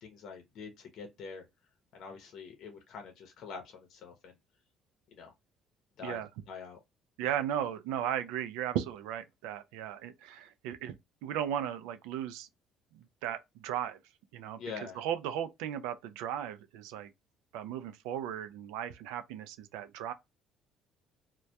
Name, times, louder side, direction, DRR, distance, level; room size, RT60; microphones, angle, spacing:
voice 1, 0.0-1.4 1.9-4.4 5.1-5.3 6.0-6.2 6.5-6.8 14.6-15.0, left 5 dB, 65° left, 0.7 m, -45 dB
voice 2, 7.2-11.0 11.2-12.5 12.9-14.0 14.3-14.6 15.0-17.1 17.5-20.1, right 10 dB, 90° right, 0.3 m, -36 dB
2.2 x 2.1 x 2.7 m
supercardioid pair, 85°, 0 cm